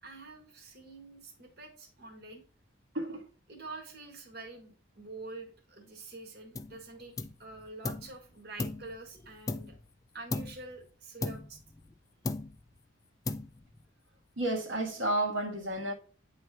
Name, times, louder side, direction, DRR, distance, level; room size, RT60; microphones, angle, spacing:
voice 1, 0.0-2.4 3.5-9.8 10.1-11.6, right 3 dB, 50° right, 1.6 m, -47 dB
sound 1, 6.5-6.8 7.2-8.1 8.6-9.9 10.3-10.7 11.2-12.0 12.2-12.8 13.2-13.8, left 3 dB, 15° left, 0.3 m, -37 dB
voice 2, 14.4-15.9, right 1 dB, 70° right, 1.5 m, -31 dB
9.5 x 3.2 x 4.6 m
head